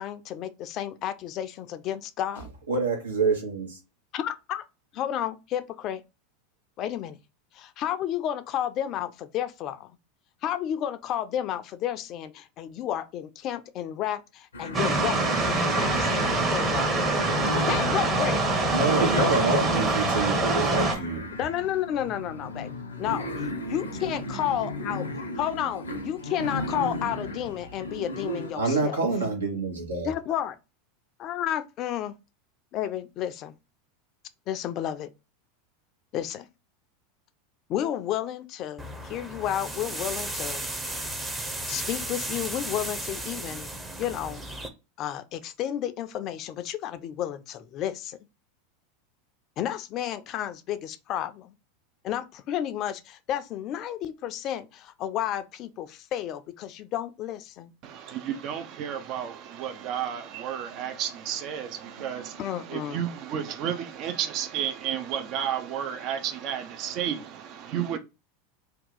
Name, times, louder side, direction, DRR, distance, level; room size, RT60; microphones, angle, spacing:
voice 1, 0.0-2.5 4.1-4.6 4.9-6.0 6.8-7.2 7.5-9.9 10.4-17.2 17.7-18.4 21.4-22.7 23.0-23.3 23.7-25.0 25.4-29.0 30.0-30.6 31.2-32.1 32.7-33.5 34.5-35.1 36.1-36.5 37.7-40.7 41.7-43.7 44.0-44.4 45.0-48.2 49.6-51.5 52.0-57.7 62.4-63.0, left 11 dB, 45° left, 0.4 m, -31 dB
voice 2, 2.7-3.8 18.7-21.2 28.5-30.1 60.7-61.0 62.0-62.3, right 3 dB, 80° right, 1.1 m, -27 dB
sound 1, 14.5-28.5, left 1 dB, 85° left, 0.6 m, -35 dB
sound 2, 14.7-21.0, right 2 dB, 30° right, 1.0 m, -25 dB
sound 3, 38.8-44.7, right 1 dB, 10° right, 0.7 m, -34 dB
voice 3, 57.8-68.0, right 9 dB, 45° right, 0.5 m, -32 dB
2.8 x 2.3 x 3.7 m
figure-of-eight pair, 85°, 0 cm